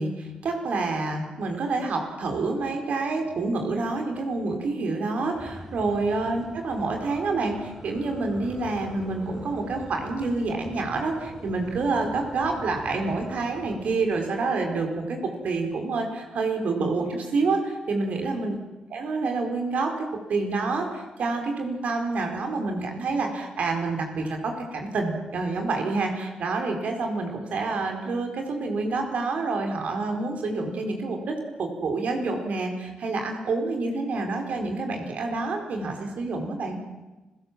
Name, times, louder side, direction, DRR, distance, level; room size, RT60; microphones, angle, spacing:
voice 1, 0.0-18.5 18.9-36.8, right 3 dB, 70° right, 3 dB, 4.8 m, -28 dB
sound 1, 5.3-14.3, right 1 dB, 10° right, 6.6 m, -43 dB
30.0 x 16.5 x 7.7 m, 1.1 s
cardioid pair, 60°, 3 cm